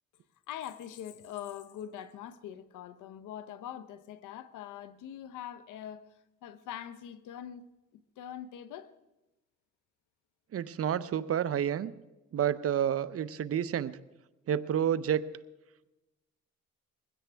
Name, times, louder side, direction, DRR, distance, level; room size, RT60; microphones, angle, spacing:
voice 1, 0.5-6.1 6.4-7.7 7.9-8.9, left 10 dB, 85° left, 0.9 m, -43 dB
voice 2, 10.5-11.9 12.3-14.0 14.5-15.2, right 9 dB, 50° right, 0.7 m, -29 dB
21.5 x 16.0 x 3.4 m
cardioid pair, 90°, 30 cm